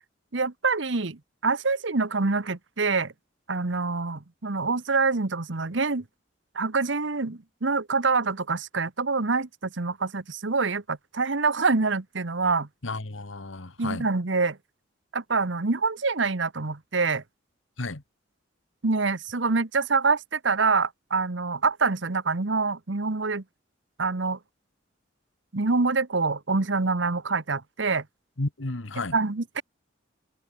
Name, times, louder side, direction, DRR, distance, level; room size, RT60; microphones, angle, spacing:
voice 1, 0.3-3.1 3.5-6.0 6.5-12.7 13.8-14.6 15.1-17.2 18.8-23.4 24.0-24.4 25.5-28.0 29.1-29.6, right 4 dB, 70° right, 1.2 m, -26 dB
voice 2, 12.8-14.1 17.8-18.0 28.4-29.1, left 2 dB, 80° left, 1.7 m, -32 dB
head